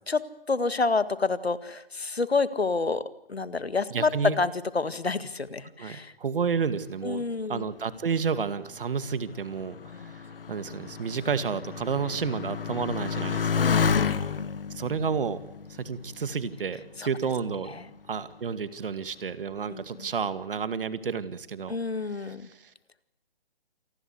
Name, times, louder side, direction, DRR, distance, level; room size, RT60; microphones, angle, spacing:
voice 1, 0.1-6.1 7.0-7.7 13.6-14.5 17.0-17.1 17.7-17.8 19.7-20.1 21.7-22.5, left 4 dB, 85° left, 15 dB, 2.0 m, -29 dB
voice 2, 3.9-4.3 5.8-7.2 7.5-13.6 14.7-15.4 15.7-17.8 18.1-21.8 22.3-22.7, right 6 dB, 60° right, 13 dB, 2.2 m, -31 dB
Motorcycle, 7.9-16.9 17.6-18.2, left 6 dB, 65° left, 1.6 m, -31 dB
27.5 x 20.0 x 8.0 m, 0.84 s
figure-of-eight pair, 145°, 30 cm